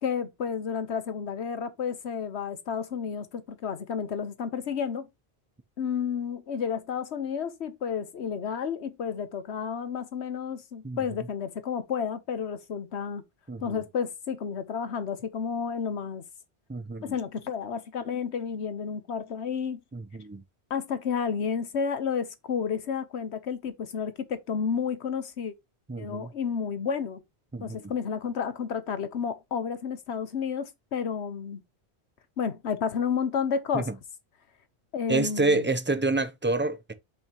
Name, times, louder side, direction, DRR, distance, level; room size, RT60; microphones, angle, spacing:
voice 1, 0.0-5.1 5.8-13.2 13.6-16.2 17.0-19.8 20.7-25.5 26.0-27.2 27.6-31.6 32.4-33.9 34.9-35.7, left 6 dB, 85° left, 1.2 m, -31 dB
voice 2, 13.5-13.8 16.7-17.1 19.9-20.4 25.9-26.3 27.5-27.8 33.7-33.9 35.1-36.9, right 3 dB, 15° right, 0.4 m, -28 dB
7.2 x 5.4 x 3.0 m
omnidirectional pair, 1.1 m